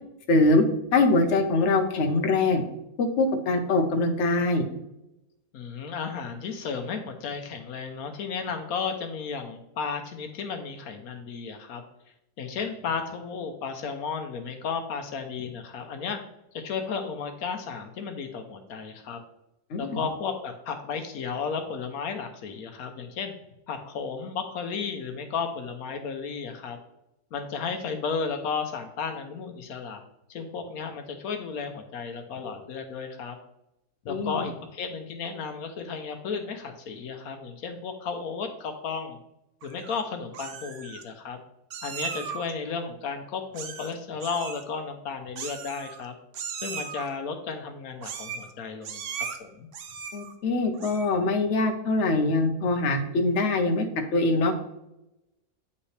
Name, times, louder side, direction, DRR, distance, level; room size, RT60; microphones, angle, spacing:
voice 1, 0.3-0.6 0.9-2.6 3.0-4.6 19.7-20.0 34.1-34.4 50.1-53.9 54.1-54.5, left 2 dB, 55° left, 5 dB, 1.1 m, -23 dB
voice 2, 5.5-11.8 12.4-16.2 16.5-19.2 19.8-23.3 23.7-26.8 27.3-30.0 30.3-33.4 34.0-39.2 39.6-41.4 41.8-46.1 46.6-49.7, left 5 dB, 75° left, 6 dB, 1.2 m, -33 dB
Meow, 39.6-40.0 40.3-41.0 41.7-42.5 43.5-43.9 44.2-44.6 45.4-46.1 46.3-47.1 48.0-48.5 48.8-49.4 49.7-50.3 50.7-51.2, right 6 dB, 60° right, 1.0 m, -37 dB
8.2 x 5.6 x 3.2 m, 0.88 s
omnidirectional pair, 1.5 m